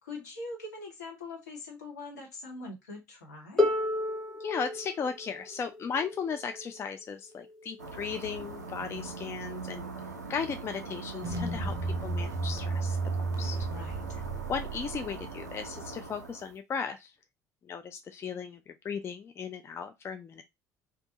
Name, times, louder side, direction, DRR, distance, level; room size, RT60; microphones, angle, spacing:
voice 1, 0.0-3.7 11.4-11.7 13.7-14.0, left 2 dB, 75° left, 1.1 m, -43 dB
Harp, 3.6-9.4 10.4-10.5, left 2 dB, 5° left, 0.8 m, -34 dB
voice 2, 4.4-9.9 10.3-11.7 12.0-13.6 14.5-17.1 17.7-20.4, left 6 dB, 30° left, 0.3 m, -36 dB
sound 1, 7.8-16.5, right 3 dB, 85° right, 0.4 m, -42 dB
sound 2, 11.2-15.5, right 3 dB, 40° right, 0.5 m, -33 dB
2.5 x 2.2 x 2.7 m
figure-of-eight pair, 60°, 9 cm